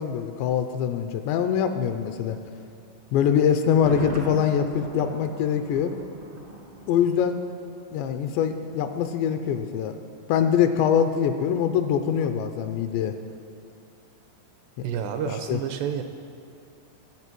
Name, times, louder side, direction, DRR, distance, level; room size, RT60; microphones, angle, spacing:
voice 1, 0.0-2.4 3.1-5.9 6.9-7.4 7.9-10.0 10.3-13.1 14.8-14.9 15.5-15.6, left 8 dB, 80° left, 7 dB, 2.7 m, -23 dB
Thunder, 3.7-7.6 7.9-8.0, right 1 dB, 50° right, 0.6 m, -37 dB
voice 2, 14.8-16.0, right 8 dB, 85° right, 7 dB, 2.6 m, -29 dB
22.0 x 8.0 x 6.1 m, 2.6 s
omnidirectional pair, 5.4 m